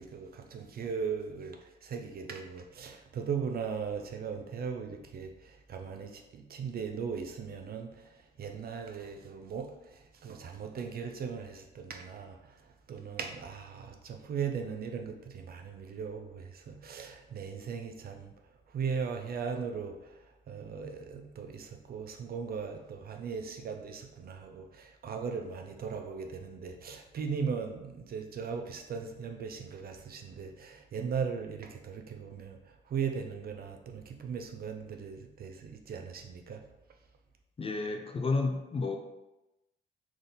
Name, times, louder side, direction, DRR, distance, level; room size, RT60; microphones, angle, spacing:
voice 1, 0.0-18.3 18.7-36.6, right 6 dB, 50° right, 4 dB, 0.5 m, -38 dB
voice 2, 37.6-39.0, left 3 dB, 30° left, 4 dB, 0.5 m, -31 dB
3.7 x 2.6 x 3.9 m, 0.97 s
cardioid pair, 90°, 20 cm